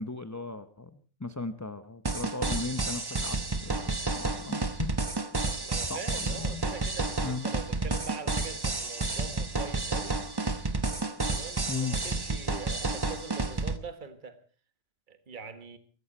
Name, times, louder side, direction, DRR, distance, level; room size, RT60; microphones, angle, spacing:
voice 1, 0.0-3.4 3.6-3.8 4.2-4.9 5.9-6.6 7.2-7.5 11.7-12.0, left 3 dB, 15° left, 0.7 m, -36 dB
sound 1, 2.1-13.8, right 3 dB, 20° right, 0.9 m, -31 dB
voice 2, 5.4-10.2 11.3-14.4 15.1-15.8, right 5 dB, 40° right, 1.7 m, -43 dB
23.0 x 14.0 x 4.3 m
omnidirectional pair, 1.4 m